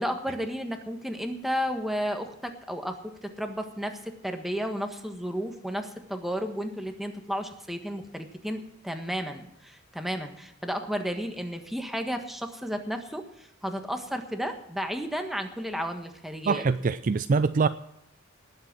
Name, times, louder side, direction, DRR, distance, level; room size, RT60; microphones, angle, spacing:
voice 1, 0.0-16.6, equal, ahead, 5 dB, 1.5 m, -33 dB
voice 2, 16.5-17.7, right 4 dB, 40° right, 13 dB, 0.4 m, -24 dB
19.0 x 7.8 x 6.1 m, 0.79 s
head